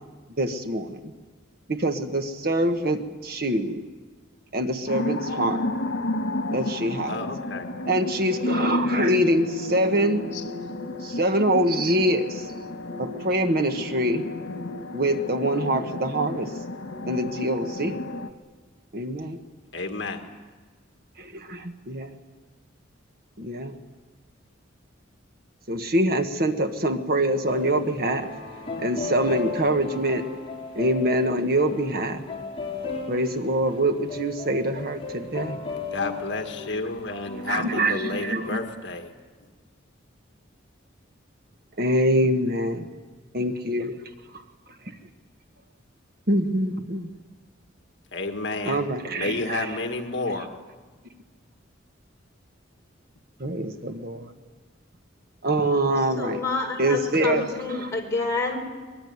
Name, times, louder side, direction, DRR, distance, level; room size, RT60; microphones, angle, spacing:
voice 1, 0.4-1.1 1.7-3.8 4.5-5.6 6.5-7.2 7.9-10.3 11.0-12.4 13.0-14.2 14.9-16.5 17.1-18.0 18.9-19.4 21.2-22.1 23.4-23.8 25.7-28.3 28.8-30.2 30.7-32.2 33.1-35.6 37.5-38.6 41.8-42.9 43.3-44.0 46.3-47.1 48.6-49.6 53.4-54.3 55.4-56.4 56.8-57.9, right 1 dB, 50° right, 6 dB, 1.4 m, -24 dB
sound 1, 4.9-18.3, left 2 dB, 85° left, 1.6 m, -31 dB
voice 2, 7.1-7.7 10.3-10.4 11.1-11.2 19.7-20.3 35.9-39.1 48.1-48.8 49.1-50.5, left 3 dB, 60° left, 4 dB, 1.9 m, -31 dB
sound 2, 27.5-38.5, left 4 dB, 30° left, 5.1 m, -35 dB
voice 3, 56.2-58.6, left 3 dB, 15° left, -2 dB, 5.2 m, -28 dB
24.0 x 21.5 x 9.5 m, 1.4 s
head